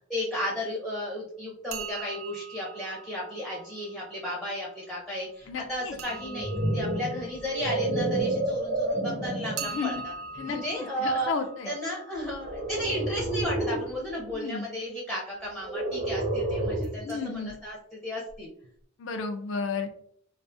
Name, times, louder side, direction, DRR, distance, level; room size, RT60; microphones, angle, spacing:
voice 1, 0.1-10.1 10.5-11.3 11.7-18.5, equal, ahead, -5 dB, 0.5 m, -34 dB
sound 1, 1.7-4.4 6.0-8.7 9.6-13.4 16.8-17.2 17.5-17.6 18.3-18.4 18.6-18.7, right 5 dB, 85° right, 0.4 m, -43 dB
voice 2, 5.5-5.9 9.6-9.9 10.4-10.6 11.0-11.7 14.3-14.7 17.0-17.5 19.0-19.9, left 5 dB, 70° left, 6 dB, 0.3 m, -32 dB
sound 2, 6.1-9.7 10.4-10.6 12.4-13.9 15.6-17.1, right 2 dB, 55° right, 0.8 m, -29 dB
2.3 x 2.3 x 2.5 m, 0.63 s
head